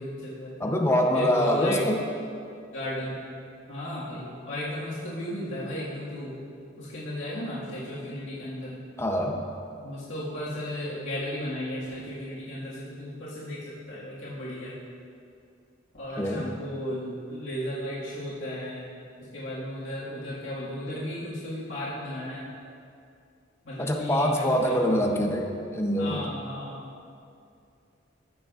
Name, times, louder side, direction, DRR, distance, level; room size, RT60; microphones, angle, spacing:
voice 1, 0.0-0.7 1.1-1.9 2.7-3.1 3.7-6.3 6.8-8.7 9.8-14.8 15.9-18.9 19.3-22.5 23.6-25.2 26.0-26.9, left 1 dB, 85° left, -9 dB, 1.9 m, -35 dB
voice 2, 0.6-2.0 9.0-9.4 16.2-16.5 23.8-26.2, equal, 15° left, 2 dB, 0.7 m, -24 dB
15.0 x 6.5 x 2.5 m, 2.4 s
head